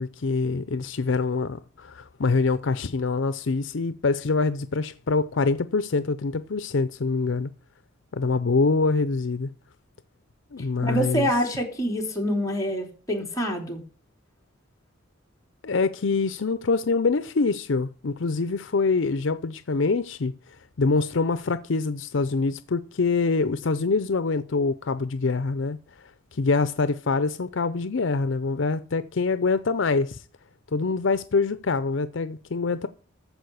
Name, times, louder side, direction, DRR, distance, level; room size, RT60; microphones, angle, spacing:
voice 1, 0.0-7.5 8.1-9.5 10.5-11.3 15.6-20.3 20.8-25.8 26.3-30.2 30.7-32.9, left 4 dB, 70° left, 0.6 m, -25 dB
voice 2, 10.6-13.8, equal, 15° left, 3.0 m, -26 dB
14.5 x 4.8 x 8.4 m
head